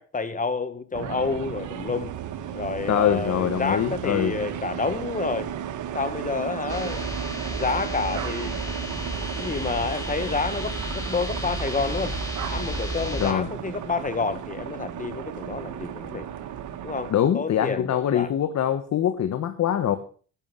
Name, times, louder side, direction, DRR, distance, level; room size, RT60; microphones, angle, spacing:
voice 1, 0.0-2.2 2.5-5.5 5.9-8.5 9.4-12.2 12.5-16.3 16.8-18.3, left 4 dB, 25° left, 1.6 m, -29 dB
sound 1, 0.9-17.1, right 9 dB, 80° right, 1.4 m, -34 dB
voice 2, 2.9-4.3 13.2-13.5 17.1-20.0, left 10 dB, 60° left, 1.2 m, -23 dB
sound 2, 6.7-13.3, equal, 10° left, 4.5 m, -33 dB
11.5 x 11.0 x 5.6 m
cardioid pair, 90°, 30 cm